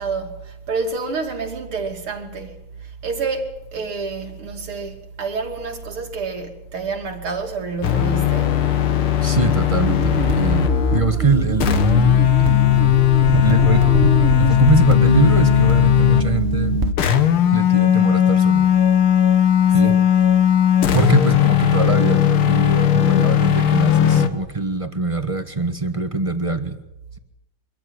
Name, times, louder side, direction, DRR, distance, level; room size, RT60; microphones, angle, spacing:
voice 1, 0.0-8.7 19.7-20.0, right 4 dB, 80° right, 3.7 m, -28 dB
sound 1, 7.8-11.1 11.6-16.3 17.0-24.3, left 11 dB, 75° left, 2.2 m, -17 dB
voice 2, 9.2-13.0 13.4-13.9 14.4-16.8 17.5-18.7 19.7-19.9 20.9-26.8, right 3 dB, 20° right, 1.2 m, -23 dB
sound 2, 9.8-16.9, right 4 dB, 35° right, 1.5 m, -23 dB
24.5 x 14.5 x 9.8 m
omnidirectional pair, 2.4 m